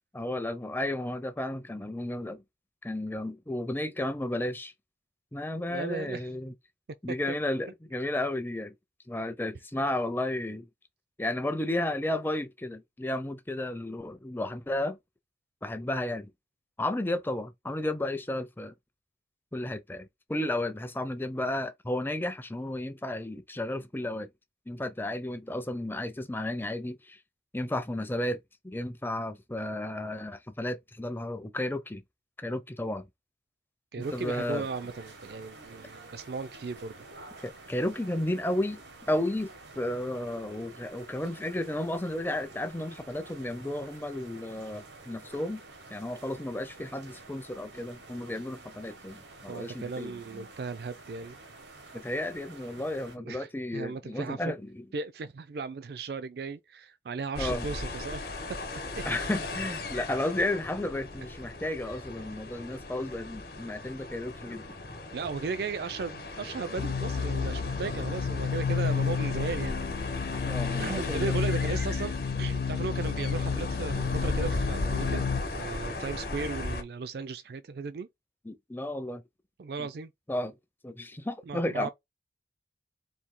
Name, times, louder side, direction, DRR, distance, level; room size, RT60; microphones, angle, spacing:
voice 1, 0.1-2.4 2.8-4.7 5.3-6.5 7.0-8.7 9.1-10.7 11.2-15.0 15.6-16.3 16.8-18.7 19.5-24.3 24.7-27.2 27.5-28.4 28.6-32.0 32.4-33.1 34.0-34.7 37.4-38.8 39.1-45.6 45.9-50.5 51.9-54.8 57.4-57.7 59.1-64.7 70.5-71.3 78.4-79.2 79.8-79.9 80.3-80.5 80.8-81.9, left 1 dB, 10° left, 0.4 m, -33 dB
voice 2, 5.7-6.3 7.3-7.4 33.9-37.1 49.5-51.4 52.8-53.0 53.2-54.5 54.9-58.2 58.5-59.0 64.5-64.6 65.1-69.8 70.8-72.1 72.4-75.3 75.6-78.1 79.6-80.1 81.5-81.9, right 4 dB, 60° right, 0.4 m, -36 dB
sound 1, 34.0-53.2, right 3 dB, 90° right, 1.0 m, -50 dB
sound 2, 57.3-76.8, left 2 dB, 55° left, 1.0 m, -37 dB
sound 3, 66.8-75.4, left 6 dB, 80° left, 0.4 m, -31 dB
4.3 x 2.7 x 3.7 m
head